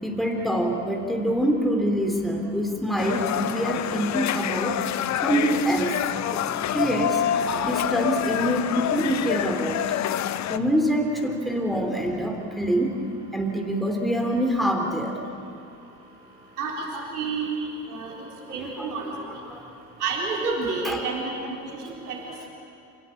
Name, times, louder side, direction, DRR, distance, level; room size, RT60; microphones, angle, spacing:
voice 1, 0.0-4.8 5.2-6.0 6.3-7.2 7.6-10.0 10.5-13.0 13.3-15.2 16.9-17.1 18.5-19.6 20.8-21.1, equal, ahead, 2 dB, 3.4 m, -26 dB
sound 1, 3.0-10.6, left 10 dB, 40° left, 0.9 m, -27 dB
voice 2, 17.1-17.6 17.9-18.1 18.5-19.1 20.0-21.6 21.8-22.2, right 4 dB, 75° right, -2 dB, 4.3 m, -29 dB
29.0 x 17.5 x 8.6 m, 2.6 s
figure-of-eight pair, 55°, 45 cm